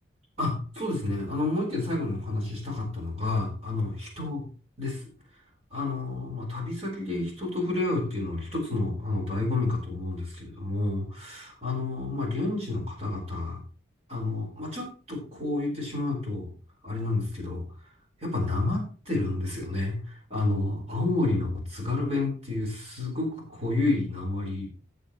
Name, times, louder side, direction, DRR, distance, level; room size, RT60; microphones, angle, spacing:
voice 1, 0.4-4.4 4.8-5.0 5.7-13.6 14.1-16.5 16.8-17.6 18.2-24.7, left 2 dB, 35° right, 0 dB, 4.2 m, -30 dB
14.0 x 8.1 x 3.0 m, 0.38 s
head